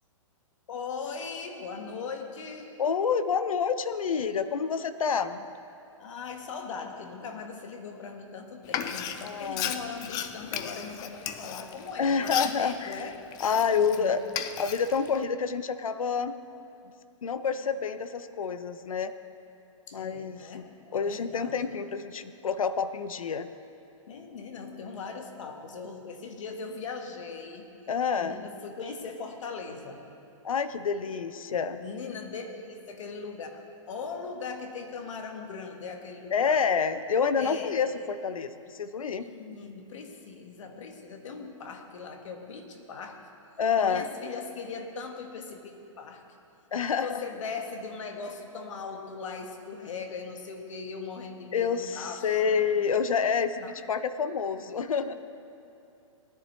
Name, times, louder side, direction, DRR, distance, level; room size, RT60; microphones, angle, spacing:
voice 1, 0.7-2.7 6.0-13.1 13.5-14.2 19.9-21.8 24.1-27.7 28.2-30.0 31.0-31.2 31.8-36.6 37.4-37.8 39.2-43.2 43.8-46.2 46.9-52.6 53.6-53.7, left 5 dB, 65° left, 4 dB, 1.7 m, -39 dB
voice 2, 2.8-5.5 9.2-9.8 12.0-13.1 13.4-14.2 14.6-16.4 17.2-19.1 19.9-20.6 20.9-23.5 27.9-28.5 30.4-31.8 36.3-39.3 43.6-44.1 46.7-47.2 51.5-55.1, left 6 dB, 85° left, 12 dB, 0.7 m, -28 dB
Frying (food), 8.7-14.0 14.3-15.2, left 10 dB, 25° left, 0.5 m, -35 dB
19.5 x 10.5 x 3.2 m, 2.6 s
hypercardioid pair, 135°, 17 cm